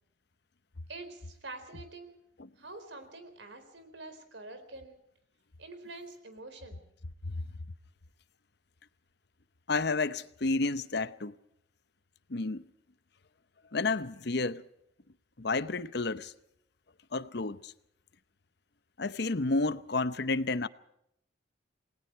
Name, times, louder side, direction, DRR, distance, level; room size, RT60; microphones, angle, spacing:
voice 1, 0.9-2.2 2.6-5.0 5.6-6.9, right 2 dB, 65° right, 4.1 m, -46 dB
voice 2, 9.7-11.4 12.3-12.7 13.7-14.6 15.4-16.3 17.1-17.7 19.0-20.7, left 3 dB, 55° left, 0.8 m, -31 dB
28.5 x 20.0 x 4.6 m
head